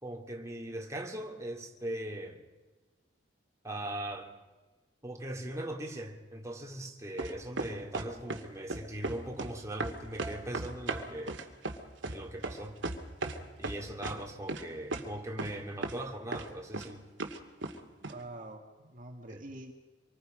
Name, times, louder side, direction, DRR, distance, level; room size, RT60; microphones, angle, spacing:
voice 1, 0.0-2.4 3.6-4.3 5.0-11.4 12.1-12.8 13.6-17.1 19.3-19.4, right 1 dB, 15° right, 0 dB, 2.6 m, -40 dB
sound 1, 7.2-8.4 8.7-9.5 9.8-13.4 13.6-14.2 14.5-14.6 14.9-15.0 15.4-15.6 15.8-16.0 16.3-16.9 17.2-17.7 18.0-18.1, right 3 dB, 85° right, 2.3 m, -35 dB
voice 2, 18.0-19.7, right 2 dB, 45° right, 2 dB, 2.1 m, -46 dB
26.5 x 24.0 x 5.2 m, 1.2 s
head